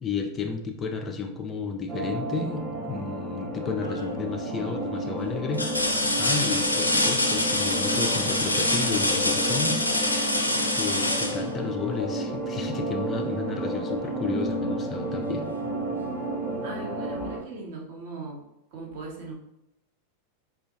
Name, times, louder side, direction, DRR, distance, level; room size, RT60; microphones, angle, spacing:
voice 1, 0.0-9.9 10.7-15.5, left 5 dB, 25° left, 3 dB, 0.4 m, -32 dB
sound 1, 1.9-17.4, right 1 dB, 20° right, 0.7 m, -32 dB
sound 2, 3.8-4.3 4.8-4.9 5.5-12.2 14.0-14.1 14.6-15.6 16.9-17.0, left 1 dB, 85° left, 0.4 m, -26 dB
voice 2, 16.6-18.4 18.7-19.3, right 3 dB, 50° right, -2 dB, 1.0 m, -39 dB
4.5 x 2.4 x 2.7 m, 0.83 s
figure-of-eight pair, 90°, 0 cm